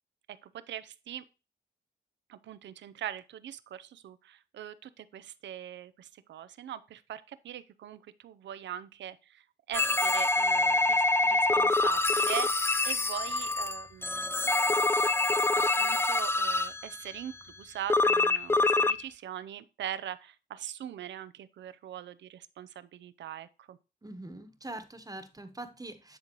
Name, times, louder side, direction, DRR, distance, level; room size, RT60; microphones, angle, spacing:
voice 1, 0.3-1.2 2.3-14.5 15.7-23.8, right 11 dB, 85° right, 0.5 m, -42 dB
sound 1, 9.7-17.0 17.9-19.0, left 2 dB, 15° left, 0.3 m, -26 dB
voice 2, 24.0-26.2, right 2 dB, 20° right, 1.1 m, -43 dB
10.0 x 3.8 x 3.0 m
cardioid pair, 50°, 19 cm